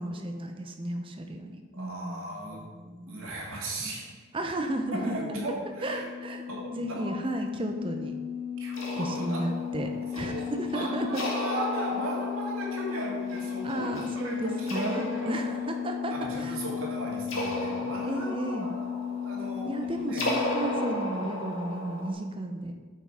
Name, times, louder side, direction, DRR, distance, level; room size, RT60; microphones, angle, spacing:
voice 1, 0.0-2.3 2.6-3.2 4.3-5.2 5.8-6.4 6.7-8.1 9.0-11.2 13.6-16.1 16.4-16.5 18.0-18.7 19.6-22.7, right 1 dB, 25° right, 5 dB, 0.7 m, -33 dB
voice 2, 1.7-2.7 3.1-4.1 4.9-6.1 6.5-7.1 8.6-9.4 10.1-15.4 16.1-18.9 19.2-19.7 20.0-20.3, right 1 dB, 80° right, -3 dB, 2.3 m, -36 dB
sound 1, 4.7-20.9, left 8 dB, ahead, 1.9 m, -35 dB
sound 2, 8.7-22.1, left 1 dB, 70° left, 1.7 m, -36 dB
8.6 x 5.8 x 4.9 m, 1.5 s
head